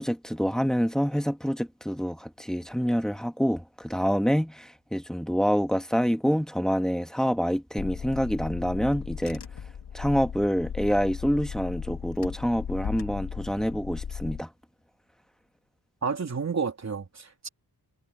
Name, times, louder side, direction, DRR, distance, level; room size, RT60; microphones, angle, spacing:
voice 1, 0.0-9.4 9.9-14.5, equal, ahead, 1.4 m, -27 dB
Car / Engine, 7.8-14.4, left 7 dB, 70° left, 1.7 m, -37 dB
voice 2, 16.0-17.5, right 5 dB, 40° right, 3.2 m, -30 dB
wide cardioid pair, 115°, 40 cm